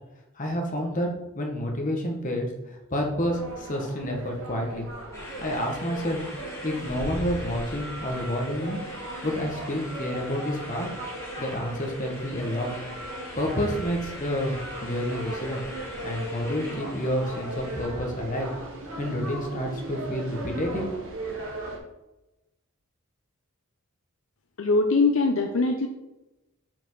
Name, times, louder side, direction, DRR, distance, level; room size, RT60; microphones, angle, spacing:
voice 1, 0.4-1.1 1.4-2.5 2.9-4.9 5.4-6.2 6.6-8.8 9.2-10.9 11.4-12.7 13.4-14.6 14.8-15.6 16.0-18.5 19.0-20.9, equal, 35° left, 1 dB, 1.2 m, -29 dB
sound 1, 3.3-21.8, right 1 dB, 65° right, 1.6 m, -38 dB
sound 2, 5.1-17.9, left 1 dB, 15° left, 1.7 m, -42 dB
voice 2, 24.6-25.9, left 3 dB, 65° left, 4 dB, 0.5 m, -22 dB
6.0 x 5.1 x 4.6 m, 0.98 s
head